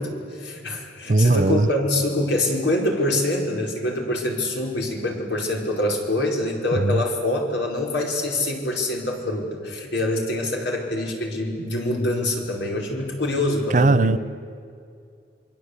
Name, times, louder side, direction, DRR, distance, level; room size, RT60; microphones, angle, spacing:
voice 1, 0.0-14.2, left 1 dB, 90° left, 0 dB, 5.1 m, -25 dB
voice 2, 1.1-1.7 6.8-7.0 13.7-14.2, right 2 dB, 45° right, 15 dB, 0.6 m, -18 dB
28.5 x 22.5 x 8.3 m, 2.4 s
head